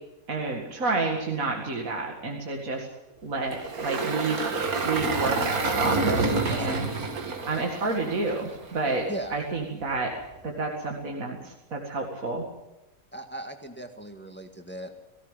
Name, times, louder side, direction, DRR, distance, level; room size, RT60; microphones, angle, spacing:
voice 1, 0.3-2.9 3.2-4.5 4.8-6.9 7.5-9.1 9.3-10.1 10.4-12.4, right 3 dB, 70° right, 0 dB, 2.6 m, -30 dB
Engine, 3.5-8.8, right 3 dB, 90° right, 2.4 m, -28 dB
voice 2, 13.1-14.9, right 1 dB, 10° left, 5 dB, 1.7 m, -37 dB
18.0 x 17.0 x 9.0 m, 0.98 s
omnidirectional pair, 1.5 m